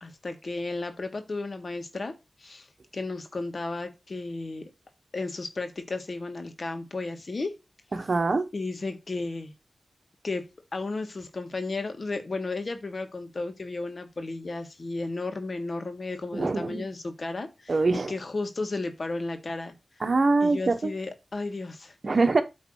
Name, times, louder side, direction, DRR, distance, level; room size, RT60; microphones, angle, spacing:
voice 1, 0.0-2.1 2.4-2.7 2.9-4.6 5.1-7.5 8.0-8.1 8.5-9.5 10.2-10.4 10.7-19.7 20.4-21.9, left 3 dB, 60° left, 1.6 m, -33 dB
voice 2, 7.9-8.4 16.3-16.8 17.7-18.1 20.0-20.9 22.0-22.4, right 3 dB, 60° right, 1.2 m, -23 dB
8.9 x 3.2 x 6.3 m
wide cardioid pair, 60°, 0 cm